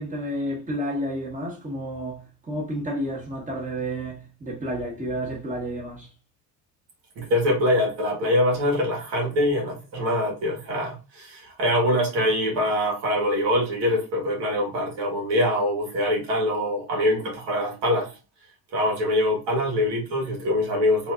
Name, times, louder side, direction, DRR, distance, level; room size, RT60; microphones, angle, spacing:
voice 1, 0.0-6.1, equal, 15° right, 1.5 m, -31 dB
voice 2, 7.1-18.1 18.7-21.1, left 1 dB, 65° right, 1.7 m, -24 dB
4.1 x 2.8 x 2.4 m
supercardioid pair, 90°, 44 cm